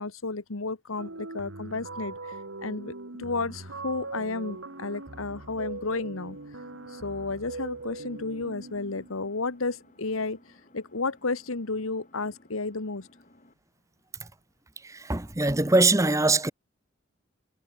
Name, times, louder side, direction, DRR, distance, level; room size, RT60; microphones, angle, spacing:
voice 1, 0.0-2.4 2.6-2.9 3.2-6.4 6.9-10.4 10.7-13.1, left 3 dB, 80° left, 1.4 m, -32 dB
sound 1, 1.0-9.4, right 3 dB, 70° right, 1.9 m, -41 dB
Engine, 3.5-13.5, left 1 dB, 35° left, 5.8 m, -59 dB
voice 2, 14.8-16.5, right 2 dB, 15° right, 1.1 m, -23 dB
head